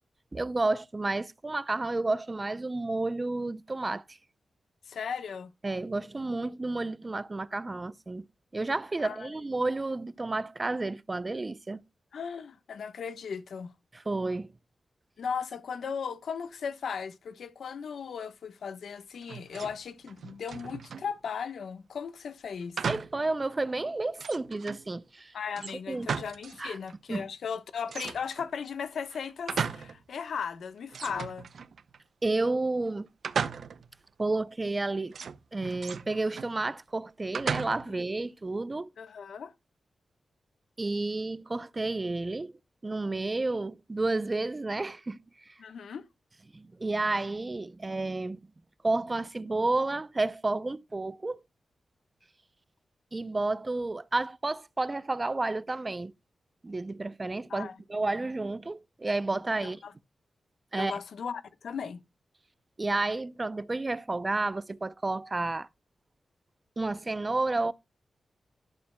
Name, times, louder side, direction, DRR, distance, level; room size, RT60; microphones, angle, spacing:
voice 1, 0.3-4.2 5.6-8.2 8.5-11.8 13.9-14.5 22.9-25.3 25.9-26.1 26.6-26.8 27.1-27.3 32.2-33.1 34.2-35.2 35.5-38.9 40.8-42.5 42.8-45.2 45.5-45.6 46.5-48.4 48.8-51.4 53.1-56.1 56.6-59.8 60.7-61.0 62.8-65.7 66.8-67.7, right 2 dB, 25° right, 0.5 m, -31 dB
voice 2, 4.9-5.5 9.0-9.3 12.1-13.7 15.2-22.8 25.3-31.5 39.0-39.5 45.6-46.0 57.5-57.8 59.6-59.9 60.8-62.0, left 6 dB, 85° left, 1.2 m, -37 dB
sound 1, 19.2-19.8 20.1-21.1 22.8-23.2 23.7-23.8 24.2-24.9 25.5-26.6 26.9-27.0 27.9-28.5 29.1-30.0 30.4-30.5 30.9-32.0 33.2-34.0 35.1-36.5 37.3-38.0, right 6 dB, 70° right, 0.7 m, -36 dB
12.0 x 11.5 x 2.2 m
wide cardioid pair, 115°, 0 cm